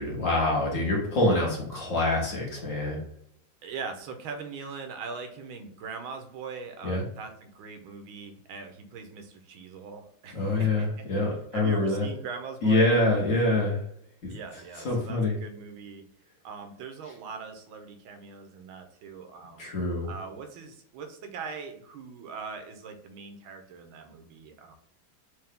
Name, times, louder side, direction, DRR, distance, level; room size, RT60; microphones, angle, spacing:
voice 1, 0.0-3.0 6.8-7.0 10.3-12.1 12.6-13.8 14.2-14.3 14.8-15.3 19.6-20.1, left 2 dB, 45° left, -2 dB, 1.2 m, -25 dB
voice 2, 3.6-12.9 14.3-16.0 16.4-19.7 20.0-24.7, right 5 dB, 85° right, 5 dB, 1.5 m, -41 dB
4.6 x 2.7 x 3.5 m, 0.69 s
omnidirectional pair, 2.2 m